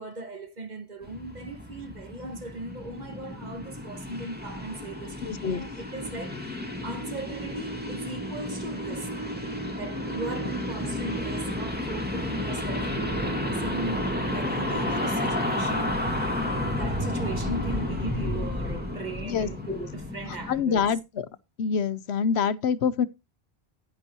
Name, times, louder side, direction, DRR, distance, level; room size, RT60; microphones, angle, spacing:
voice 1, 0.0-9.1 9.8-20.8, right 3 dB, 45° right, 1.6 m, -39 dB
sound 1, 1.0-20.6, left 1 dB, 10° right, 1.9 m, -31 dB
voice 2, 5.2-5.6 19.2-19.9 20.5-21.3 21.6-23.1, left 6 dB, 85° left, 1.0 m, -26 dB
9.9 x 9.8 x 2.9 m
omnidirectional pair, 1.1 m